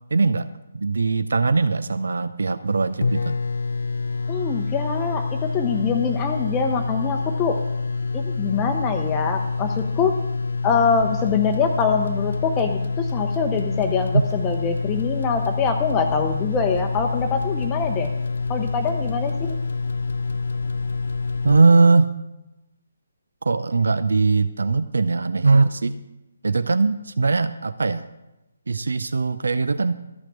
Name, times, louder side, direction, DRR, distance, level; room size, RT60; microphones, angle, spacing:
voice 1, 0.1-0.5 0.7-3.4 21.4-22.1 23.4-26.0 26.4-28.1 28.7-29.9, right 3 dB, 65° right, 13 dB, 0.5 m, -20 dB
sound 1, 2.7-2.8 3.0-21.6, left 4 dB, 60° left, 0.4 m, -27 dB
voice 2, 4.3-7.6 8.1-10.1 10.6-18.1 18.5-19.6, left 5 dB, 15° left, 3 dB, 0.7 m, -24 dB
13.0 x 5.9 x 7.1 m, 0.98 s
figure-of-eight pair, 145°, 0 cm